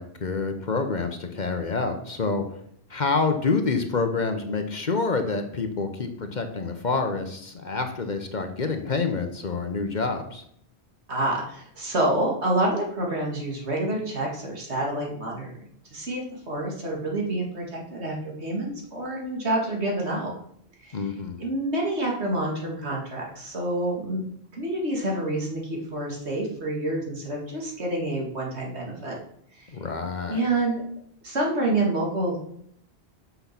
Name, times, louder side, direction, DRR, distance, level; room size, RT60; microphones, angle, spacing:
voice 1, 0.0-2.4 2.9-10.4 20.9-21.4 29.7-30.4, left 4 dB, 45° left, 7 dB, 0.9 m, -27 dB
voice 2, 11.1-15.5 15.9-20.4 20.8-21.1 21.4-24.2 24.5-29.2 29.5-29.7 30.3-30.8 31.2-32.4, right 1 dB, 75° right, -1 dB, 2.5 m, -28 dB
6.8 x 6.1 x 5.9 m, 0.68 s
omnidirectional pair, 1.1 m